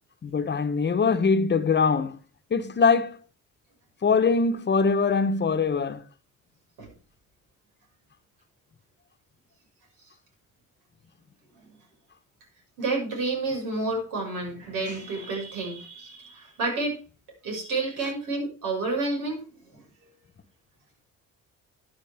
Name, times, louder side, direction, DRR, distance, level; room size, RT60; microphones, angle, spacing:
voice 1, 0.2-2.2 2.5-3.2 4.0-6.0, left 5 dB, 35° left, 1.0 m, -22 dB
voice 2, 12.8-17.0 17.4-19.4, right 3 dB, 85° right, 6.0 m, -29 dB
13.0 x 9.7 x 3.5 m
cardioid pair, 90°, 30 cm